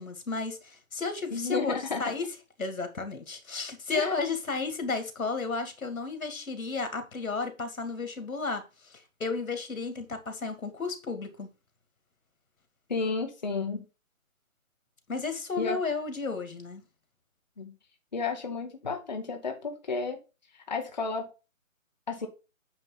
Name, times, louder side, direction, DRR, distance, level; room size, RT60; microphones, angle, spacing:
voice 1, 0.0-2.2 2.6-11.5 15.1-16.8, left 4 dB, 90° left, 2.3 m, -33 dB
voice 2, 1.3-2.1 3.9-4.1 12.9-13.9 15.6-15.8 17.6-17.7 18.1-20.2 20.7-21.3 22.1-22.3, left 4 dB, 35° left, 1.2 m, -32 dB
9.0 x 3.3 x 5.7 m
hypercardioid pair, 175°, 40 cm